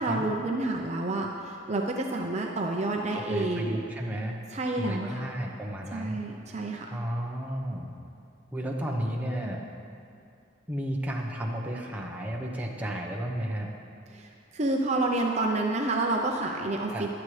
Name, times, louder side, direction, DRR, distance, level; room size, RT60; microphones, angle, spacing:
voice 1, 0.0-3.8 4.5-5.2 5.9-6.9 14.1-17.1, right 2 dB, 35° right, 1 dB, 0.6 m, -29 dB
voice 2, 3.1-4.4 4.7-6.2 6.5-7.9 8.5-9.6 10.7-13.7 16.9-17.1, equal, 10° right, -1 dB, 0.9 m, -33 dB
14.5 x 10.5 x 3.3 m, 2.4 s
head